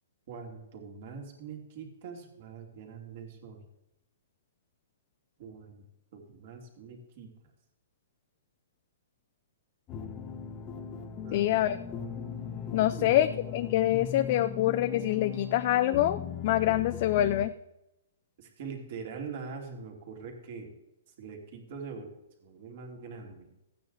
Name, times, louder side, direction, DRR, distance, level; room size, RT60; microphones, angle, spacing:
voice 1, 0.3-3.6 5.4-5.9 6.1-7.3 11.2-11.5 13.0-13.1 18.4-20.7 21.2-22.1 22.4-23.5, right 5 dB, 45° right, 2 dB, 2.7 m, -43 dB
sound 1, 9.9-17.5, left 7 dB, 20° left, 0.8 m, -39 dB
voice 2, 11.3-11.8 12.7-13.3 13.5-17.5, left 13 dB, 40° left, 11 dB, 0.4 m, -25 dB
14.5 x 9.0 x 4.0 m, 0.90 s
hypercardioid pair, 160°, 0 cm